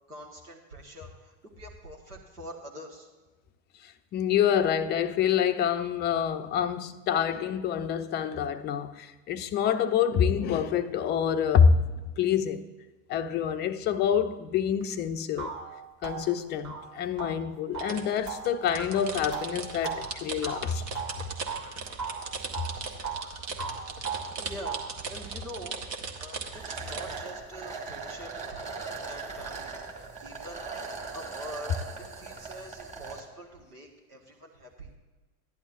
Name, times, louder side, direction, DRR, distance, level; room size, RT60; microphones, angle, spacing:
voice 1, 0.1-3.1 24.3-25.8 26.2-28.3 29.1-31.7 32.1-34.9, equal, 90° right, 1.4 m, -45 dB
voice 2, 3.8-12.7 13.1-15.5 16.0-20.8, left 8 dB, 25° left, 0.4 m, -27 dB
sound 1, 14.8-14.9 15.4-21.7 22.0-23.3 23.6-25.0, right 6 dB, 35° right, 1.8 m, -38 dB
sound 2, 17.7-27.2, right 4 dB, 55° right, 1.3 m, -38 dB
sound 3, 26.5-33.2, right 4 dB, 15° right, 1.9 m, -39 dB
15.5 x 10.5 x 2.5 m
figure-of-eight pair, 80°, 44 cm